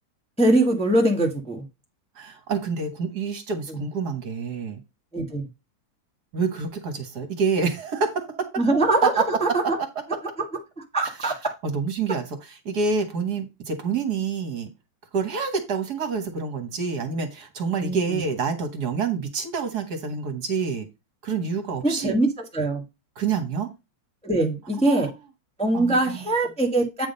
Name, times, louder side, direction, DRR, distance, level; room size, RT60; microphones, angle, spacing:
voice 1, 0.4-1.6 3.7-3.8 5.1-5.5 8.6-9.8 10.8-11.4 17.8-18.2 21.8-22.8 24.2-25.1 25.6-27.1, right 2 dB, 5° left, 1.1 m, -22 dB
voice 2, 2.1-4.8 6.3-8.5 11.2-11.3 11.6-14.7 15.1-20.9 21.2-22.1 23.2-23.7 24.8-25.1 25.7-26.0, right 5 dB, 55° right, 1.7 m, -27 dB
8.6 x 3.7 x 5.2 m
omnidirectional pair, 2.2 m